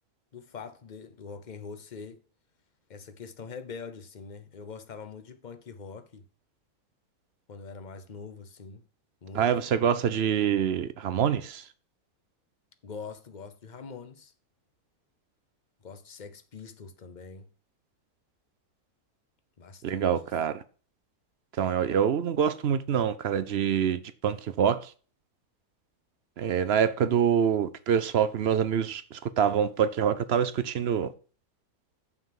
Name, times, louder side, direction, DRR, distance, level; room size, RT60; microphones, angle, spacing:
voice 1, 0.3-2.2 2.9-6.2 7.5-8.8 9.2-9.5 12.8-14.3 15.8-17.5 19.6-20.1, left 5 dB, 35° left, 0.8 m, -43 dB
voice 2, 9.3-11.6 19.8-20.6 21.6-24.9 26.4-31.1, right 8 dB, 60° right, 0.7 m, -26 dB
6.8 x 5.9 x 7.5 m
omnidirectional pair, 1.6 m